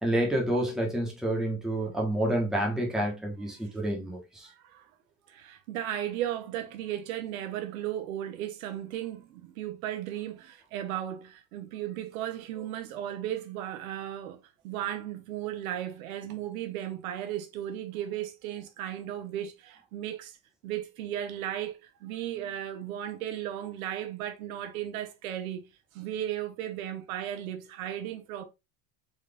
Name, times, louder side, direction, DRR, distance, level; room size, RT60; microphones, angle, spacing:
voice 1, 0.0-4.5, right 1 dB, ahead, 1.1 m, -29 dB
voice 2, 4.4-4.9 5.3-20.4 20.6-25.7 25.9-28.4, right 11 dB, 90° right, 1.0 m, -35 dB
4.2 x 2.5 x 3.3 m
supercardioid pair, 145°, 41 cm